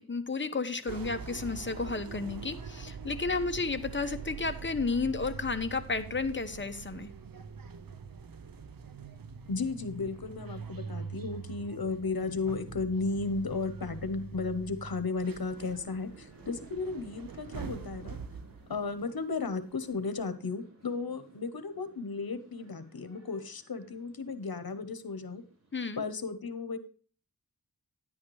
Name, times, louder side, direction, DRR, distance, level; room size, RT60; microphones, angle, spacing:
voice 1, 0.0-7.1 25.7-26.0, left 4 dB, 30° left, 8 dB, 1.0 m, -32 dB
sound 1, 0.9-19.5 19.9-20.2, right 6 dB, 70° right, 0.7 m, -44 dB
voice 2, 9.5-18.2 18.7-25.4 26.0-26.8, left 4 dB, 85° left, 11 dB, 1.0 m, -34 dB
sound 2, 15.5-25.8, right 3 dB, 45° right, 4.2 m, -58 dB
10.5 x 8.7 x 3.2 m, 0.41 s
wide cardioid pair, 50°, 36 cm